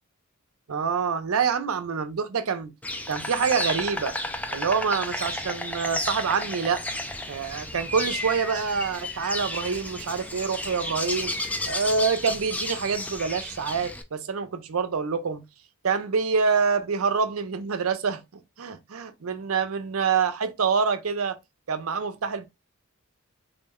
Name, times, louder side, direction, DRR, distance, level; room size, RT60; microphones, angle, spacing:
voice 1, 0.7-2.7 3.1-4.1 4.5-6.8 7.3-11.3 11.7-15.4 15.8-21.4 21.7-22.5, right 5 dB, 75° right, 0.5 m, -26 dB
Insect, 2.8-14.0, left 1 dB, 5° left, 0.3 m, -32 dB
3.7 x 2.1 x 3.5 m
head